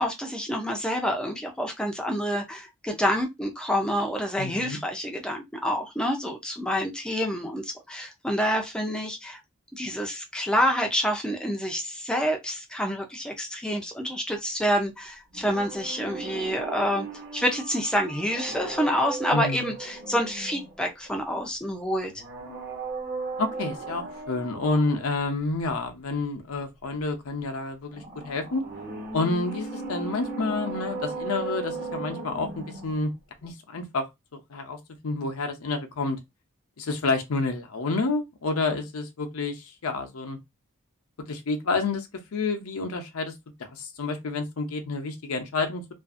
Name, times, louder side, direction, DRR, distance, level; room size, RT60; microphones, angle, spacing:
voice 1, 0.0-9.4 9.7-17.1 17.3-22.1, equal, 5° left, 0.4 m, -28 dB
voice 2, 4.4-4.8 19.3-19.7 23.4-28.6 29.1-33.1 33.4-34.1 34.3-34.8 35.0-36.2 36.8-40.4 41.3-43.3 43.6-45.8, left 3 dB, 85° left, 0.6 m, -29 dB
sound 1, 15.3-21.1 22.1-25.2 27.9-33.1 33.4-33.5, right 3 dB, 45° right, 1.1 m, -36 dB
2.5 x 2.4 x 2.4 m
head